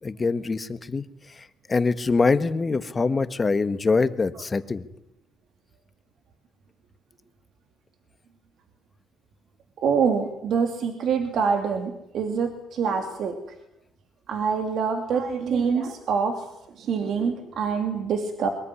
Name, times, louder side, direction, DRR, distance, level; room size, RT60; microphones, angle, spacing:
voice 1, 0.0-1.0 1.4-4.8, left 4 dB, 30° left, 12 dB, 1.6 m, -24 dB
voice 2, 9.8-13.4 14.3-16.5 16.8-18.5, right 6 dB, 70° right, 6 dB, 2.8 m, -25 dB
23.0 x 20.0 x 10.0 m, 0.84 s
cardioid pair, 90°, 0 cm